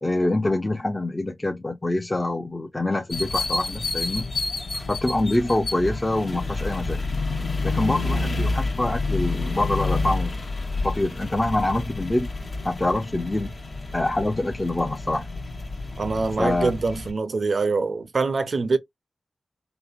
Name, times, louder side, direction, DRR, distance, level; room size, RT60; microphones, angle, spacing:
voice 1, 0.0-4.3 4.9-7.0 7.6-10.4 10.8-12.3 12.6-13.5 13.9-15.3 16.4-16.7, left 1 dB, 30° left, 0.5 m, -25 dB
sound 1, 3.1-17.1, left 3 dB, 60° left, 0.9 m, -29 dB
voice 2, 16.0-18.8, right 4 dB, 75° right, 0.4 m, -24 dB
3.1 x 2.0 x 2.3 m
cardioid pair, 40°, 0 cm